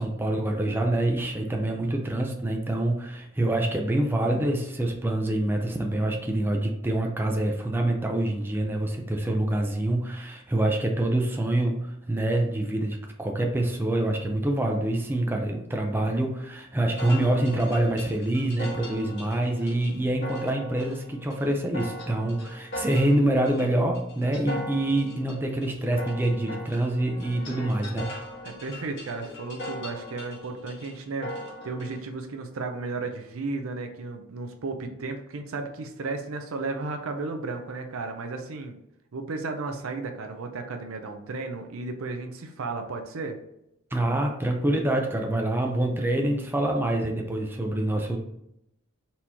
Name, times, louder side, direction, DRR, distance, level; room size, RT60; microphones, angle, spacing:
voice 1, 0.0-28.1 43.9-48.2, right 1 dB, 10° right, 1 dB, 0.5 m, -26 dB
sound 1, 17.0-32.0, left 1 dB, 60° left, 1.5 m, -40 dB
voice 2, 28.4-31.3 31.6-38.7 39.1-43.4, right 3 dB, 80° right, 5 dB, 0.6 m, -34 dB
4.2 x 3.0 x 3.4 m, 0.81 s
head